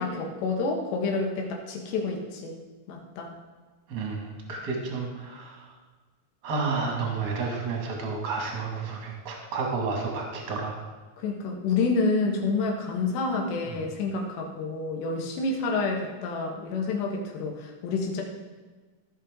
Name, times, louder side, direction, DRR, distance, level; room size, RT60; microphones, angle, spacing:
voice 1, 0.0-2.6 2.9-3.3 11.2-18.2, left 3 dB, 85° left, 1 dB, 3.5 m, -28 dB
voice 2, 3.9-5.6 6.4-10.8 13.7-13.8, right 4 dB, 40° right, 0 dB, 1.6 m, -31 dB
15.5 x 6.1 x 3.7 m, 1.3 s
omnidirectional pair, 4.8 m